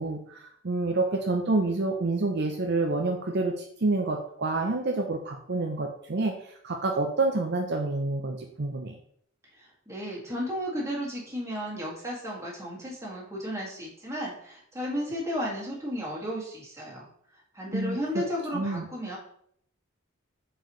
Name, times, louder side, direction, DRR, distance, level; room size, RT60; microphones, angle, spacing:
voice 1, 0.0-9.0 17.7-18.2 18.5-18.9, right 2 dB, 55° right, 3 dB, 0.6 m, -28 dB
voice 2, 9.6-17.1 17.5-19.2, equal, 15° right, -4 dB, 2.0 m, -34 dB
7.9 x 4.8 x 3.1 m, 0.66 s
head